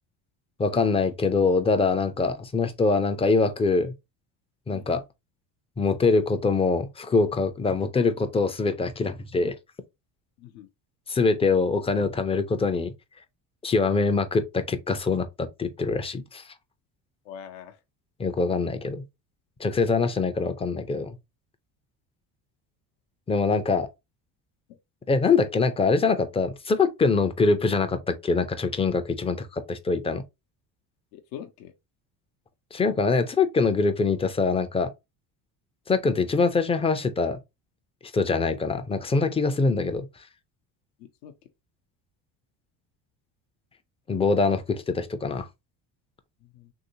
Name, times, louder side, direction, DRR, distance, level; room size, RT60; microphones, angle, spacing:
voice 1, 0.6-3.9 4.7-5.0 5.8-9.6 11.1-12.9 13.6-16.5 18.2-19.0 19.6-21.2 23.3-23.9 25.1-30.2 32.7-34.9 35.9-37.4 38.0-40.3 44.1-45.5, left 4 dB, 15° left, 0.3 m, -24 dB
voice 2, 10.4-10.7 17.2-17.8 24.7-24.8 31.1-31.7 41.0-41.3 46.4-46.7, left 9 dB, 80° left, 0.7 m, -43 dB
3.1 x 2.7 x 2.7 m
supercardioid pair, 85°, 47 cm